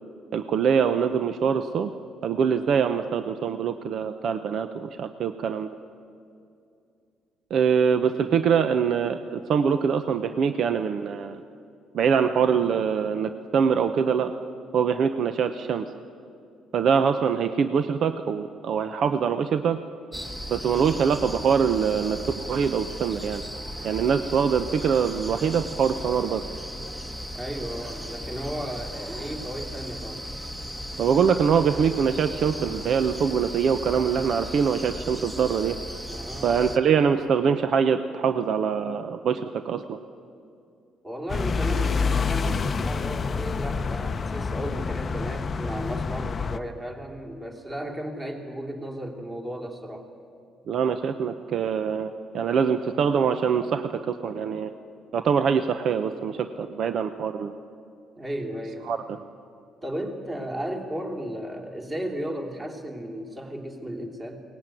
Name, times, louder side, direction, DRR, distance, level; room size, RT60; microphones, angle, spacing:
voice 1, 0.3-1.9 2.2-5.7 7.5-11.4 11.9-14.3 14.7-15.8 16.7-19.8 20.5-23.4 23.8-26.4 31.0-35.8 36.4-40.0 50.7-54.7 55.1-57.5 58.8-59.2, right 7 dB, 55° right, 9 dB, 0.8 m, -24 dB
sound 1, 20.1-36.8, equal, 5° right, 1.3 m, -37 dB
voice 2, 27.3-30.3 36.1-36.8 41.0-50.1 58.2-59.0 59.8-64.4, right 1 dB, 20° right, 1 dB, 3.0 m, -34 dB
sound 2, 41.3-46.6, left 5 dB, 30° left, 0.7 m, -27 dB
22.0 x 19.0 x 9.1 m, 2.5 s
cardioid pair, 140°, 0 cm